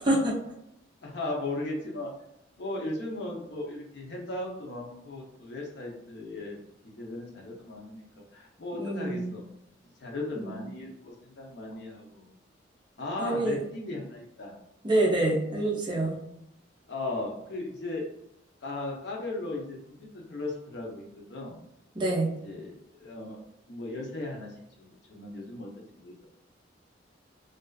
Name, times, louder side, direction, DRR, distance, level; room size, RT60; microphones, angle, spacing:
voice 1, 0.1-0.4 8.8-9.3 10.4-10.6 13.2-13.6 14.8-16.1 21.9-22.3, right 1 dB, 25° right, -4 dB, 0.5 m, -26 dB
voice 2, 1.0-2.1 2.6-6.6 6.8-9.4 10.0-12.3 13.0-14.5 16.9-18.1 18.6-21.6 22.4-23.4 23.7-26.4, left 2 dB, 60° left, -1 dB, 0.6 m, -37 dB
2.4 x 2.3 x 2.2 m, 0.82 s
head